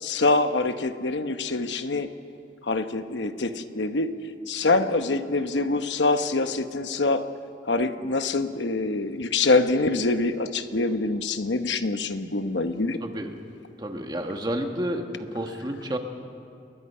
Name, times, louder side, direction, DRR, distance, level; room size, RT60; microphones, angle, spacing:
voice 1, 0.0-2.1 2.6-4.1 4.5-7.3 7.7-13.0, left 3 dB, 85° left, 9 dB, 1.0 m, -25 dB
voice 2, 13.0-13.4 13.8-16.0, equal, 25° right, 4 dB, 1.6 m, -30 dB
29.5 x 21.5 x 5.6 m, 2.4 s
head